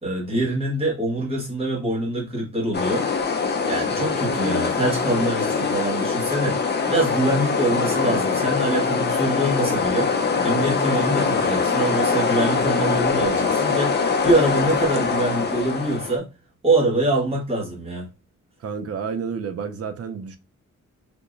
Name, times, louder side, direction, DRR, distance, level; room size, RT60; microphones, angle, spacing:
voice 1, 0.0-3.1 3.7-16.3 16.6-18.1, right 1 dB, 20° right, 1.5 m, -24 dB
sound 1, 2.7-16.2, left 5 dB, 35° left, 0.6 m, -23 dB
voice 2, 4.0-4.4 18.6-20.4, right 6 dB, 50° right, 0.5 m, -31 dB
3.6 x 2.8 x 2.4 m
wide cardioid pair, 115°, 30 cm